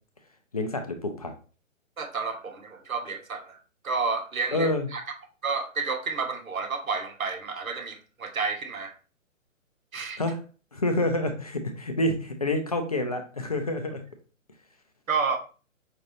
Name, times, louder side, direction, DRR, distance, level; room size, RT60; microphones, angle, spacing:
voice 1, 0.5-1.3 4.5-4.9 10.2-10.4 10.7-14.0, left 1 dB, 30° left, 6 dB, 0.4 m, -27 dB
voice 2, 2.0-3.6 3.8-5.0 5.4-8.9 9.9-10.2 15.1-15.4, right 4 dB, 80° right, 6 dB, 0.8 m, -30 dB
5.1 x 2.9 x 2.6 m, 0.37 s
figure-of-eight pair, 125°, 40 cm